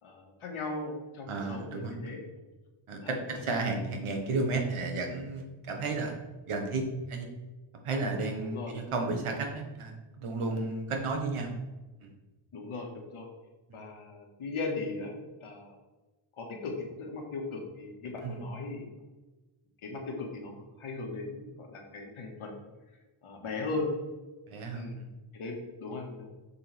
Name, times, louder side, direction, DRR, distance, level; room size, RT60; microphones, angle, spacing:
voice 1, 0.0-2.2 3.0-3.2 8.4-8.7 12.5-13.3 13.7-15.8 16.4-18.9 19.8-22.5 23.2-23.9 24.7-25.0 25.3-26.3, left 3 dB, 75° left, 1 dB, 1.8 m, -38 dB
voice 2, 1.3-2.2 2.9-6.1 6.5-7.3 7.8-11.6 12.0-12.1 18.2-18.5 24.5-25.1, right 3 dB, 85° right, 3 dB, 1.6 m, -33 dB
7.1 x 6.9 x 3.5 m, 1.2 s
wide cardioid pair, 180°, 49 cm